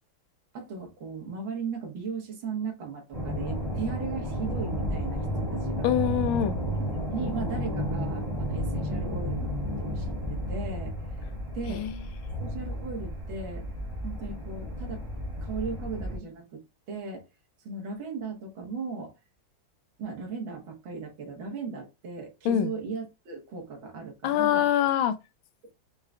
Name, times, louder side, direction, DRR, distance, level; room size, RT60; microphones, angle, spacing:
voice 1, 0.5-5.9 7.1-11.0 11.5-11.8 12.4-13.7 14.0-15.0 15.4-16.6 16.9-17.2 17.7-19.1 20.0-24.7, right 5 dB, 80° right, 1.9 m, -37 dB
sound 1, 3.1-16.2, equal, 20° right, 1.0 m, -32 dB
voice 2, 5.8-6.6 11.7-11.9 22.4-22.7 24.2-25.1, left 11 dB, 85° left, 1.4 m, -24 dB
4.7 x 2.2 x 3.6 m
omnidirectional pair, 2.1 m